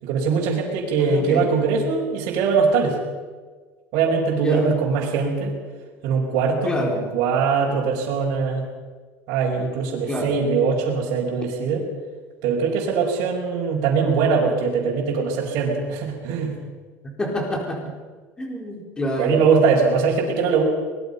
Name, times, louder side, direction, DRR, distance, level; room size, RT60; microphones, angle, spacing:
voice 1, 0.0-3.0 3.9-5.5 6.0-8.6 9.3-11.8 12.4-16.5 19.2-20.6, right 5 dB, 70° right, -4 dB, 5.1 m, -21 dB
voice 2, 1.0-1.5 4.3-4.7 6.6-7.0 10.1-10.4 17.2-17.9 18.4-19.4, left 1 dB, 15° left, 0 dB, 4.2 m, -27 dB
24.0 x 21.0 x 5.5 m, 1.4 s
cardioid pair, 155°, 6 cm